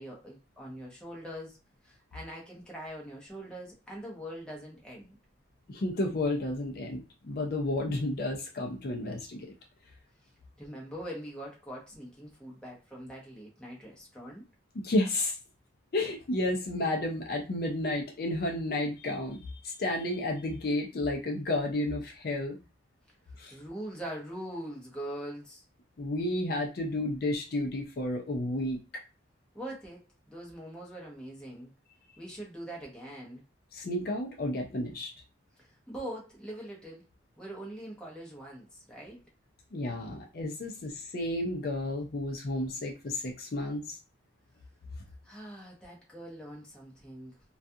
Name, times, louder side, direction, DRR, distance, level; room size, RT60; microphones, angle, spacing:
voice 1, 0.0-1.6 1.8-5.2 10.6-14.5 23.5-25.6 29.5-30.0 30.3-31.7 32.2-33.4 35.6-37.0 37.4-39.2 45.2-47.4, right 1 dB, 5° left, -3 dB, 0.7 m, -42 dB
voice 2, 5.7-9.5 14.8-15.4 15.9-22.6 23.4-23.5 26.0-28.8 33.7-35.1 39.7-44.0, left 1 dB, 50° left, 1 dB, 0.4 m, -32 dB
2.3 x 2.3 x 2.6 m, 0.30 s
head